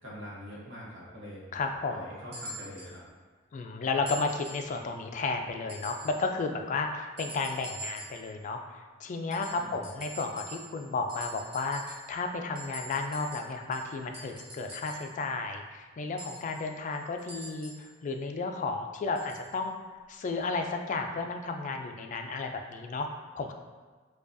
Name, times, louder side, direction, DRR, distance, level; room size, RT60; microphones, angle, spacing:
voice 1, 0.0-1.4 1.9-3.0 9.5-9.8, equal, 70° right, -6 dB, 0.9 m, -44 dB
voice 2, 1.5-2.0 3.5-19.7 20.1-23.5, left 3 dB, 40° left, 4 dB, 0.3 m, -33 dB
sound 1, 2.3-3.0 4.1-4.7 5.7-6.2 7.2-8.3 9.3-10.8 11.1-12.2 12.6-15.1 16.2-17.9 19.2-19.5 20.4-20.5, right 1 dB, 55° right, 1.3 m, -44 dB
4.8 x 2.3 x 2.5 m, 1.4 s
head